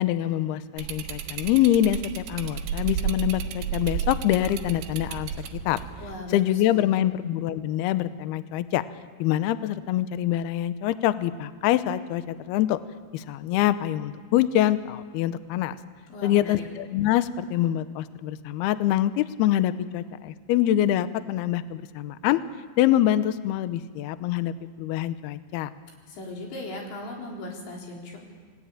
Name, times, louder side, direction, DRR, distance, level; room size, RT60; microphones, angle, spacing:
voice 1, 0.0-5.3 5.7-5.8 6.3-8.8 9.2-12.8 13.1-15.8 16.2-22.4 22.8-25.7, left 12 dB, 90° left, 12 dB, 2.2 m, -25 dB
sound 1, 0.8-6.2, right 8 dB, 75° right, 3.7 m, -32 dB
voice 2, 6.0-7.0 16.1-16.6 26.1-28.2, left 2 dB, 65° left, -1 dB, 6.3 m, -38 dB
29.0 x 19.5 x 8.9 m, 1.5 s
omnidirectional pair, 5.7 m